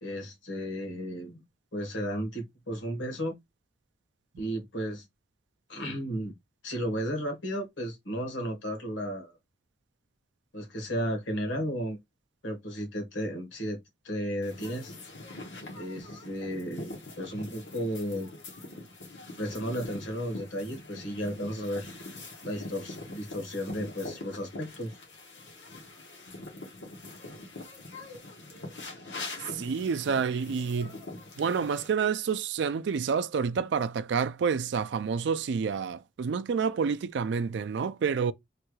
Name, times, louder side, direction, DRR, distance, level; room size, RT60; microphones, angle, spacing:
voice 1, 0.0-1.4 1.7-3.4 4.4-5.0 5.7-6.3 6.6-9.3 10.5-12.0 12.4-13.8 14.0-14.9 15.8-18.3 19.4-21.9 22.4-24.9, equal, 90° left, 1.4 m, -34 dB
sound 1, 14.4-31.9, left 2 dB, 70° left, 1.2 m, -43 dB
voice 2, 29.5-30.9 31.4-38.3, right 6 dB, 70° right, 0.3 m, -28 dB
3.3 x 2.3 x 3.0 m
head